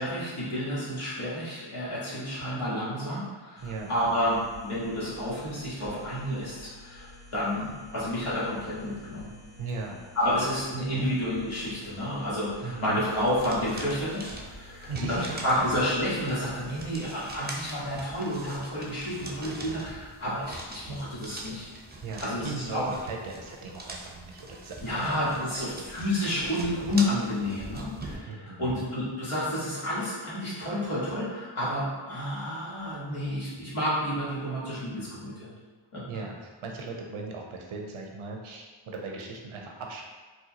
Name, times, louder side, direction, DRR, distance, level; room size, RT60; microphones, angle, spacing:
voice 1, 0.0-9.3 10.1-21.7 22.2-22.9 24.8-35.5 35.9-36.0, left 1 dB, 85° left, -8 dB, 1.4 m, -30 dB
sound 1, 3.6-17.1, left 2 dB, 50° left, 1.1 m, -51 dB
voice 2, 9.6-10.0 10.3-10.5 10.9-11.1 12.6-13.0 14.9-15.6 22.0-25.2 25.5-26.0 28.3-28.9 36.1-40.0, right 3 dB, 85° right, 1 dB, 0.7 m, -38 dB
sound 2, 13.1-28.2, right 2 dB, 20° right, 0.5 m, -43 dB
4.1 x 2.3 x 2.8 m, 1.4 s
wide cardioid pair, 65°, 49 cm